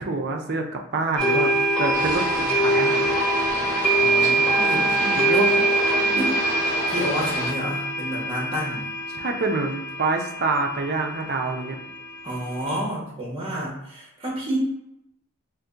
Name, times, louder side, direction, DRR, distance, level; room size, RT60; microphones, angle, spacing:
voice 1, 0.0-1.5 1.8-3.2 4.8-5.7 6.0-6.3 9.1-11.8, right 3 dB, 50° right, 3 dB, 0.5 m, -27 dB
sound 1, 1.2-12.8, right 2 dB, 5° left, 0.5 m, -24 dB
sound 2, 1.9-7.5, equal, 35° left, 1.3 m, -30 dB
voice 2, 4.0-4.9 6.1-6.4 6.9-8.9 12.2-14.6, equal, 25° right, -3 dB, 1.0 m, -30 dB
2.7 x 2.5 x 3.7 m, 0.83 s
head